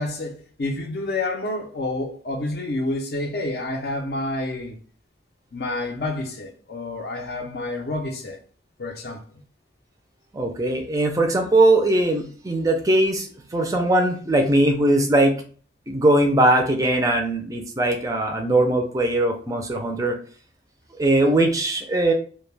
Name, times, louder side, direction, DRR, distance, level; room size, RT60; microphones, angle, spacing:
voice 1, 0.0-4.8 5.5-8.4 8.8-9.2, left 2 dB, 55° left, 0.5 m, -29 dB
voice 2, 10.3-15.3 15.9-20.2 21.0-22.1, right 1 dB, 20° right, 0.3 m, -20 dB
2.2 x 2.1 x 3.2 m
head